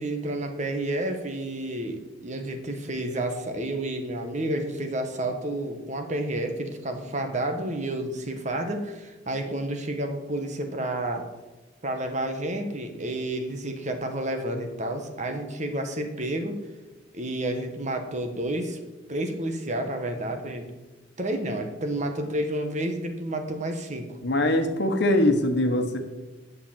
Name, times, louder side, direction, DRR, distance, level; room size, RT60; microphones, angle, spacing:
voice 1, 0.0-11.3 11.8-16.6 17.1-18.8 19.1-20.7 21.2-24.2, right 1 dB, 40° right, 5 dB, 1.4 m, -30 dB
voice 2, 24.2-26.0, left 1 dB, 60° left, 6 dB, 1.3 m, -22 dB
10.5 x 6.8 x 7.5 m, 1.1 s
head